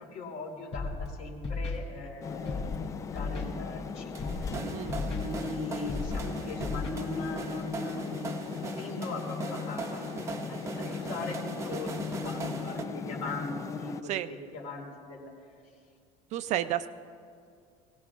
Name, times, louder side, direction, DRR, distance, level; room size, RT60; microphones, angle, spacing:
voice 1, 0.1-4.3 5.1-11.3 11.6-11.9 12.2-15.3, left 2 dB, 55° left, -1 dB, 3.0 m, -40 dB
Scratching (performance technique), 0.7-1.1 1.4-1.8 2.4-2.8 3.1-3.4 4.2-4.6 4.9-5.2 5.9-6.2 6.6-6.9, left 4 dB, 40° left, 2.6 m, -34 dB
sound 1, 2.2-14.0, left 6 dB, 20° left, 0.3 m, -38 dB
sound 2, 4.1-12.8, right 3 dB, 20° right, 0.7 m, -40 dB
voice 2, 16.3-16.9, right 12 dB, 50° right, 11 dB, 0.4 m, -31 dB
23.0 x 17.5 x 2.4 m, 2.3 s
cardioid pair, 165°, 16 cm